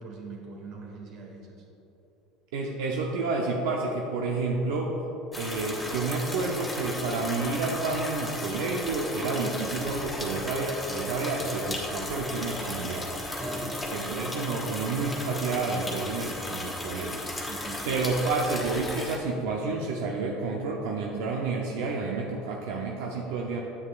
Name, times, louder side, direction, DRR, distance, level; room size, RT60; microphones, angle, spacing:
voice 1, 0.0-1.5 13.3-14.0 17.5-17.9, right 2 dB, 55° right, 1 dB, 1.6 m, -41 dB
voice 2, 2.5-5.0 5.4-13.1 13.9-17.2 17.8-23.6, right 3 dB, 90° right, -1 dB, 0.7 m, -30 dB
sound 1, 5.3-19.2, left 1 dB, 10° left, 1.1 m, -35 dB
9.6 x 8.5 x 2.5 m, 2.9 s
supercardioid pair, 130°, 0 cm